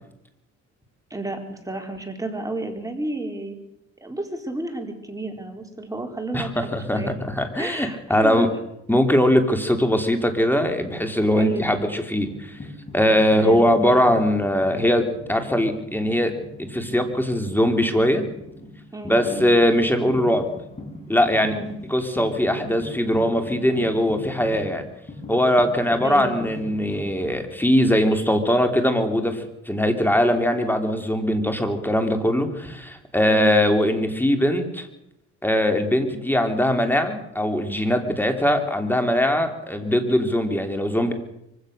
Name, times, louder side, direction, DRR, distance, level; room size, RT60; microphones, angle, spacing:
voice 1, 1.1-3.6 4.0-7.1 7.6-8.5 11.3-11.9 13.3-13.7 18.9-19.5 21.4-21.7 26.0-26.6 33.3-33.6, right 2 dB, 10° right, 3 dB, 4.2 m, -31 dB
voice 2, 6.3-7.0 7.3-8.5 8.9-12.3 12.9-16.3 16.6-18.2 19.1-20.5 21.1-21.5 21.9-24.9 25.3-34.9 35.4-41.1, equal, 5° left, 6 dB, 3.3 m, -21 dB
sound 1, 12.0-27.1, left 2 dB, 20° left, 5.8 m, -40 dB
24.0 x 16.5 x 6.7 m, 0.83 s
cardioid pair, 90°, 30 cm